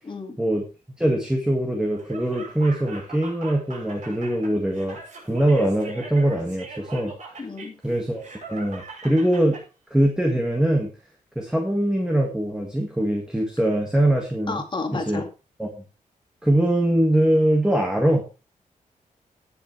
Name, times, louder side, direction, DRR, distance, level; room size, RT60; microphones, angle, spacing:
voice 1, 0.0-0.4 7.4-7.8 14.5-15.3, left 3 dB, 35° left, 5 dB, 2.1 m, -31 dB
voice 2, 1.0-5.0 5.2-7.1 7.8-9.6 9.9-10.9 11.4-14.6 14.9-15.2 15.6-15.7 16.4-18.2, right 1 dB, 5° right, 1 dB, 1.9 m, -22 dB
Laughter, 1.9-9.6, right 3 dB, 60° right, 6.3 m, -41 dB
19.0 x 6.8 x 3.3 m, 0.31 s
wide cardioid pair, 145°, 14 cm